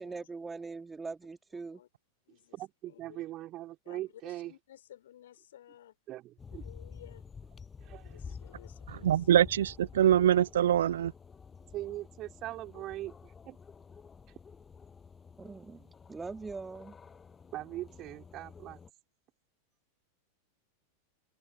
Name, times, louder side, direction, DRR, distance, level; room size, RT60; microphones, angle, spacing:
voice 1, 0.0-1.8 15.4-16.9, right 4 dB, 10° right, 2.1 m, -42 dB
voice 2, 1.5-1.9 2.3-3.2 3.8-6.0 6.5-7.3 8.0-9.6, left 12 dB, 60° left, 4.6 m, -56 dB
voice 3, 2.5-4.5 6.1-6.7 7.8-8.2 11.7-13.6 15.6-15.9 17.5-18.8, right 15 dB, 35° right, 4.3 m, -41 dB
sound 1, 6.4-18.9, left 5 dB, 15° left, 6.5 m, -50 dB
voice 4, 9.0-11.1, right 10 dB, 60° right, 0.3 m, -24 dB
open air
figure-of-eight pair, 90°, 0 cm